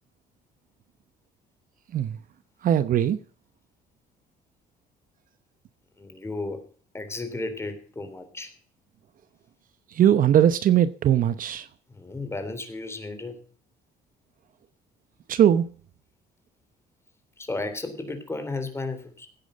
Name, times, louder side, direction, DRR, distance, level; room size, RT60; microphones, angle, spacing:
voice 1, 2.6-3.2 9.9-11.7 15.3-15.7, right 10 dB, 55° right, 0.9 m, -20 dB
voice 2, 6.0-6.6 6.9-8.5 11.9-13.4 17.4-19.3, left 2 dB, 15° left, 3.4 m, -34 dB
17.0 x 9.0 x 5.2 m
cardioid pair, 110°, 17 cm